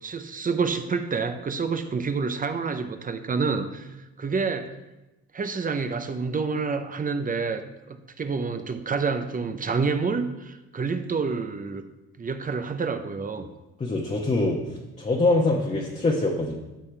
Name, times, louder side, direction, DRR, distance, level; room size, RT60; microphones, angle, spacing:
voice 1, 0.0-4.7 5.3-7.6 7.9-11.9 12.2-13.5, right 4 dB, 30° right, 9 dB, 0.7 m, -28 dB
voice 2, 13.8-14.6 15.0-16.5, left 2 dB, 25° left, -2 dB, 1.1 m, -23 dB
13.0 x 5.5 x 3.4 m, 1.0 s
cardioid pair, 95°, 30 cm